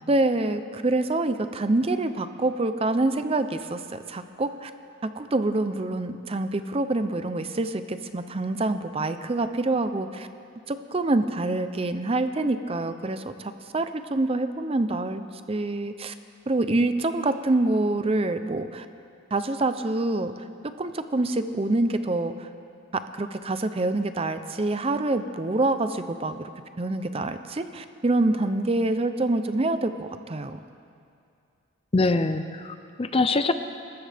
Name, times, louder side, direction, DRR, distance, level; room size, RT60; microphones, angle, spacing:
voice 1, 0.1-4.7 5.0-10.3 10.7-15.2 15.5-16.1 16.5-18.9 19.3-20.3 20.8-22.5 22.9-26.5 26.8-30.6, right 2 dB, 25° right, 10 dB, 0.5 m, -26 dB
voice 2, 31.9-33.5, left 3 dB, 25° left, 10 dB, 0.5 m, -24 dB
26.5 x 14.0 x 3.5 m, 2.4 s
head